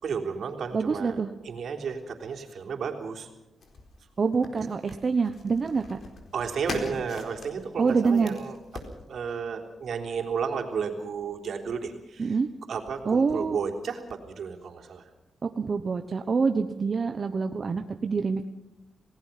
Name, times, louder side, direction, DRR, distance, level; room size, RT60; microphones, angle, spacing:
voice 1, 0.0-1.2 1.4-3.3 6.3-8.6 9.1-12.4 12.7-15.1, right 6 dB, 70° right, 2 dB, 3.5 m, -32 dB
voice 2, 0.7-1.3 4.2-6.0 7.8-8.4 12.2-12.5 13.1-13.6 15.4-18.5, right 5 dB, 40° right, 7 dB, 1.0 m, -26 dB
sound 1, 3.6-8.9, left 3 dB, 60° left, 4.2 m, -41 dB
28.0 x 18.5 x 5.9 m, 0.93 s
cardioid pair, 110°, 0 cm